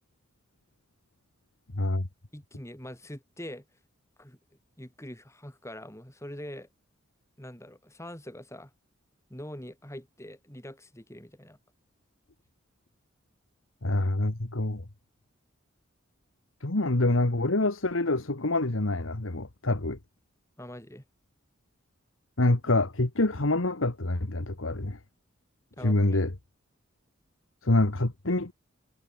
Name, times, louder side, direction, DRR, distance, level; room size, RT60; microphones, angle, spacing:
voice 1, 1.7-2.1 13.8-14.8 16.6-20.0 22.4-25.0 25.8-26.3 27.6-28.5, left 2 dB, 75° left, 1.7 m, -26 dB
voice 2, 2.3-3.6 4.2-4.4 4.8-6.7 7.4-8.7 9.3-11.6 20.6-21.0 25.8-26.2, left 1 dB, 15° left, 3.9 m, -43 dB
head